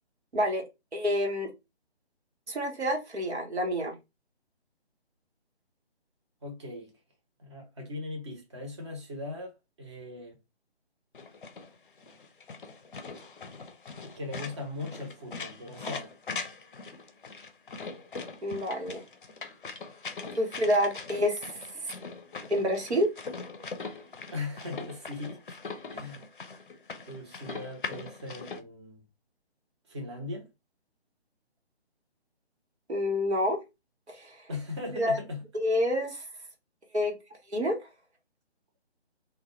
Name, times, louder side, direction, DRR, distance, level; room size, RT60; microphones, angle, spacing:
voice 1, 0.3-0.6 0.9-1.5 2.5-3.9 18.4-19.0 20.4-21.9 22.5-23.1 32.9-33.6 34.1-34.5 34.9-35.2 35.6-36.2 36.9-37.2 37.5-37.8, equal, 85° right, 1.0 m, -28 dB
voice 2, 6.4-6.9 7.4-10.4 14.1-16.1 24.3-25.6 25.9-26.2 27.0-29.0 29.9-30.5 34.5-35.4, left 2 dB, 25° right, 0.7 m, -39 dB
sound 1, 11.1-28.6, left 4 dB, 50° left, 0.5 m, -41 dB
2.2 x 2.2 x 2.9 m
figure-of-eight pair, 145°, 32 cm